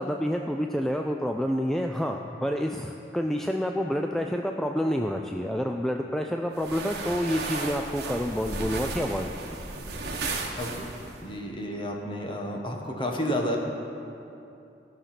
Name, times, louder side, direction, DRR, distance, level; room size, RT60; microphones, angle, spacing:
voice 1, 0.0-9.6, equal, ahead, 3 dB, 0.3 m, -28 dB
sound 1, 6.6-11.2, right 3 dB, 60° right, 1.3 m, -34 dB
voice 2, 11.2-13.6, equal, 30° left, 1 dB, 1.3 m, -31 dB
16.5 x 6.4 x 5.9 m, 2.8 s
head